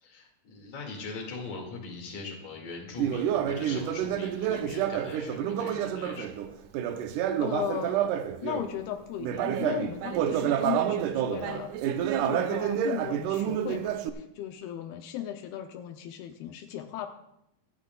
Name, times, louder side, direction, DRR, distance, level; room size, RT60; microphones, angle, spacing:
voice 1, 0.0-6.3, left 3 dB, 50° left, 0 dB, 3.2 m, -41 dB
Conversation, 3.0-8.7 9.2-14.1, right 10 dB, 85° right, 1.8 m, -29 dB
voice 2, 7.4-8.0 8.4-17.1, left 11 dB, 85° left, 5 dB, 2.7 m, -36 dB
25.0 x 9.9 x 2.3 m, 0.78 s
omnidirectional pair, 4.4 m